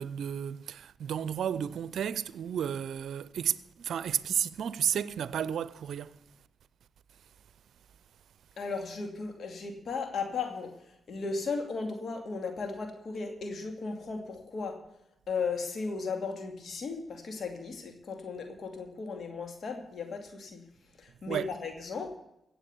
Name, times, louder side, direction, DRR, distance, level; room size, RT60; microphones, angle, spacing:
voice 1, 0.0-6.2 21.3-21.5, right 8 dB, 75° right, 0.6 m, -32 dB
voice 2, 8.6-10.7 11.1-14.8 15.3-20.6 21.0-22.1, left 4 dB, 65° left, 2.5 m, -36 dB
16.0 x 7.9 x 6.9 m
supercardioid pair, 45°, 0 cm